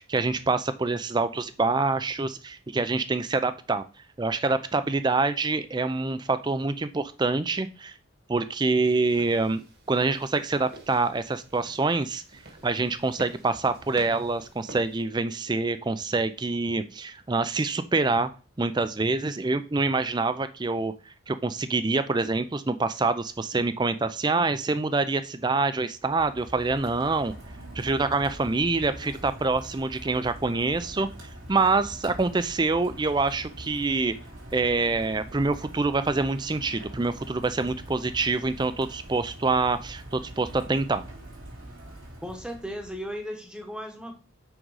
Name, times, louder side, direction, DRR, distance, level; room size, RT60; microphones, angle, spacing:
voice 1, 0.0-3.8 4.2-7.9 8.3-12.2 12.6-18.3 18.6-20.9 21.3-27.3 27.8-34.1 34.5-41.0, right 3 dB, 20° right, 12 dB, 0.4 m, -26 dB
sound 1, 8.8-15.0, right 2 dB, 50° right, 1.5 m, -49 dB
Rain, 25.9-43.2, right 1 dB, 90° right, 3.1 m, -43 dB
voice 2, 28.8-29.3 42.2-44.2, equal, 5° right, 4 dB, 1.0 m, -37 dB
6.3 x 5.1 x 4.7 m, 0.35 s
head